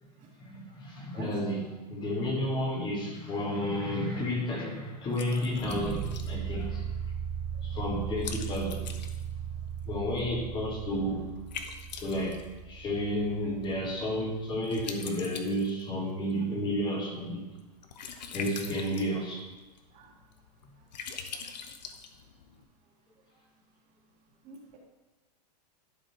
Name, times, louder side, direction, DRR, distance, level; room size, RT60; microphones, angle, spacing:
voice 1, 0.4-7.1 7.6-8.8 9.9-11.3 12.0-17.4 18.3-19.5, equal, 20° left, -1 dB, 1.8 m, -32 dB
Liquid, 3.2-22.6, left 6 dB, 85° left, 1.1 m, -46 dB
sound 1, 5.6-14.6, right 8 dB, 15° right, 0.6 m, -37 dB
voice 2, 24.4-24.8, right 5 dB, 35° right, 0 dB, 1.8 m, -48 dB
11.0 x 5.4 x 4.6 m, 1.2 s
hypercardioid pair, 140°, 21 cm